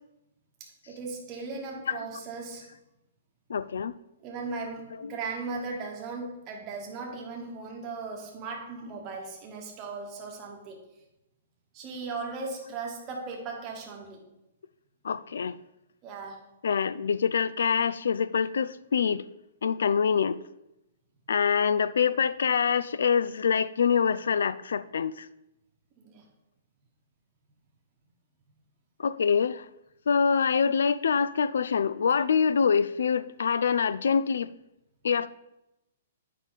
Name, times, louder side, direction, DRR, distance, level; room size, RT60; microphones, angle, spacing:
voice 1, 0.6-2.7 4.2-10.8 11.7-14.3 16.0-16.4 26.0-26.2, right 4 dB, 20° right, 1.1 m, -37 dB
voice 2, 3.5-3.9 5.0-5.2 15.0-15.6 16.6-19.2 19.6-20.4 21.3-25.3 29.0-29.7 30.1-34.5 35.0-35.3, left 6 dB, 85° left, 0.3 m, -25 dB
8.2 x 5.5 x 4.0 m
hypercardioid pair, 180°, 0 cm